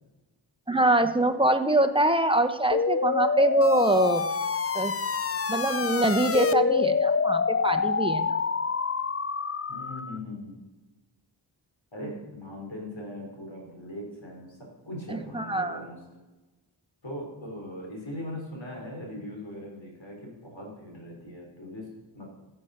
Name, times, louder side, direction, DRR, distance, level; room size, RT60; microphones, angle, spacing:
voice 1, 0.7-4.2 4.7-4.9 5.5-8.3 15.3-15.8, right 1 dB, 10° right, 8 dB, 1.0 m, -24 dB
sound 1, 2.7-10.2, left 5 dB, 30° left, 0.5 m, -27 dB
voice 2, 9.7-10.6 11.9-16.0 17.0-22.3, left 1 dB, 70° left, -1 dB, 4.3 m, -40 dB
15.0 x 7.7 x 5.8 m, 1.1 s
wide cardioid pair, 40°, 47 cm